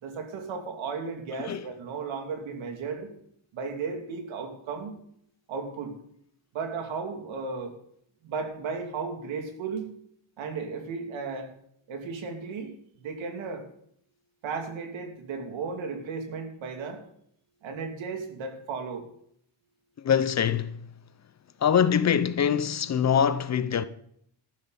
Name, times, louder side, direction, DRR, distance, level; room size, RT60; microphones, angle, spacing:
voice 1, 0.0-3.1 3.5-5.0 5.5-6.0 6.5-7.7 8.2-9.9 10.4-11.5 11.9-13.7 14.4-17.0 17.6-19.0, right 5 dB, 90° right, 2.9 m, -35 dB
voice 2, 20.0-20.8 21.6-23.8, left 8 dB, 35° left, 0.7 m, -23 dB
13.5 x 13.0 x 4.2 m
cardioid pair, 155°, 45 cm